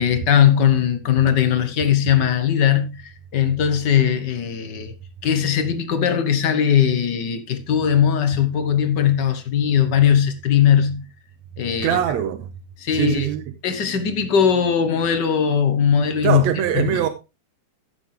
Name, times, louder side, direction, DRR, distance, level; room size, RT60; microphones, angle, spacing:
voice 1, 0.0-4.9 5.2-11.1 11.6-12.0 12.8-13.3 13.6-16.4 16.7-17.1, left 8 dB, 55° left, 1.3 m, -19 dB
voice 2, 11.8-12.5 12.9-13.4 16.2-17.1, right 10 dB, 70° right, 2.1 m, -22 dB
15.0 x 6.9 x 3.3 m
omnidirectional pair, 3.4 m